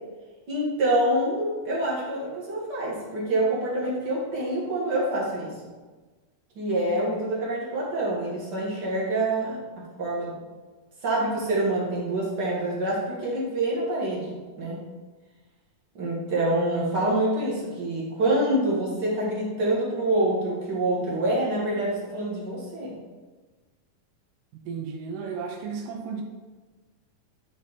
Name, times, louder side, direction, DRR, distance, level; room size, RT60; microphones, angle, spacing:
voice 1, 0.5-5.5 6.5-9.6 10.0-10.4 11.0-14.8 15.9-22.9, right 1 dB, 45° right, -5 dB, 1.6 m, -26 dB
voice 2, 24.6-26.2, right 5 dB, 80° right, 1 dB, 2.2 m, -34 dB
10.5 x 3.6 x 4.1 m, 1.3 s
omnidirectional pair, 3.9 m